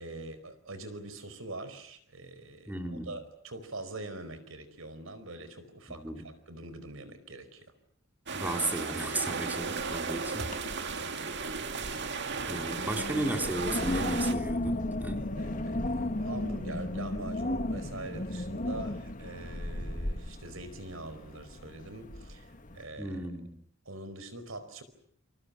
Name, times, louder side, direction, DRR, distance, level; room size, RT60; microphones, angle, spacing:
voice 1, 0.0-7.7 10.3-10.5 10.9-11.2 15.3-23.3 23.8-24.8, right 2 dB, 80° right, 12 dB, 4.7 m, -44 dB
voice 2, 2.7-3.1 5.9-6.2 8.3-10.5 12.4-15.3 23.0-23.5, right 1 dB, 10° right, 4 dB, 3.8 m, -35 dB
sound 1, 8.3-14.3, right 4 dB, 60° right, 2.3 m, -35 dB
Wind, 9.6-10.1 10.4-10.9 11.3-22.8, left 1 dB, 40° left, 1.9 m, -35 dB
29.0 x 28.0 x 6.9 m, 0.64 s
head